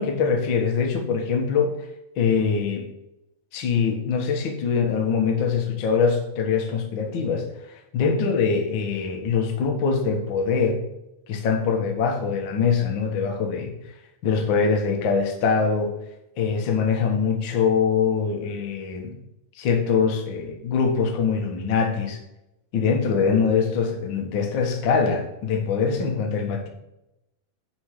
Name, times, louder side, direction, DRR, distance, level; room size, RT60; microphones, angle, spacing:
voice 1, 0.0-1.7 2.2-2.8 3.5-7.4 7.7-10.8 11.3-13.7 14.2-15.9 16.4-19.1 19.6-22.2 22.7-26.7, left 5 dB, 70° left, 3 dB, 1.1 m, -23 dB
9.8 x 4.4 x 5.0 m, 0.88 s
omnidirectional pair, 4.2 m